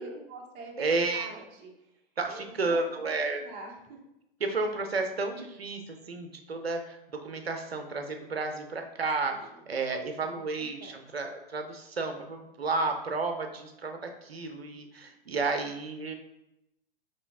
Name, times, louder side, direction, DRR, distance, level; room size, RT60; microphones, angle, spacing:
voice 1, 0.0-1.7 2.3-4.0 9.3-9.7 10.4-11.0, right 2 dB, 20° right, 0 dB, 0.5 m, -45 dB
voice 2, 0.8-1.3 2.2-3.4 4.4-9.3 9.7-16.1, right 3 dB, 85° right, 5 dB, 0.6 m, -32 dB
3.0 x 2.6 x 3.4 m, 0.87 s
figure-of-eight pair, 115°, 30 cm